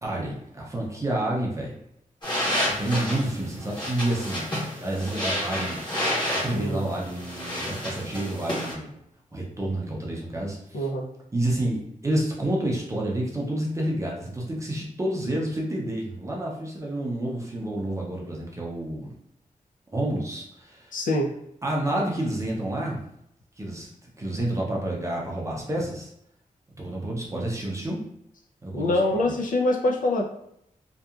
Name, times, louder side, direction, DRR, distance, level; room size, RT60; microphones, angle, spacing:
voice 1, 0.0-1.8 2.8-4.5 4.8-5.8 6.4-9.0 9.3-10.9 11.3-19.1 19.9-20.9 21.6-23.0 23.6-23.9 24.2-26.1 26.8-28.0 28.6-29.4, right 1 dB, 20° right, -2 dB, 0.5 m, -29 dB
sound 1, 2.2-8.7, equal, 30° left, 1.0 m, -30 dB
voice 2, 6.5-6.9 10.7-11.1 20.9-21.3 28.7-30.3, left 1 dB, 70° left, 0 dB, 0.4 m, -24 dB
2.7 x 2.3 x 2.4 m, 0.74 s
wide cardioid pair, 180°, 14 cm